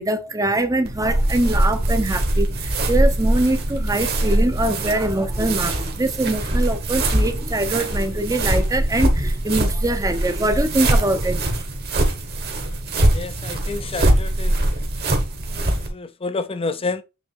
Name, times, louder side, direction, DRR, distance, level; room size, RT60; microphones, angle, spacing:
voice 1, 0.0-11.6, right 1 dB, 15° right, 0.8 m, -23 dB
sound 1, 0.8-15.9, right 1 dB, 45° right, 1.6 m, -22 dB
voice 2, 13.1-14.6 15.1-15.2 15.6-17.0, left 3 dB, 25° left, 0.6 m, -29 dB
8.3 x 3.5 x 3.5 m
head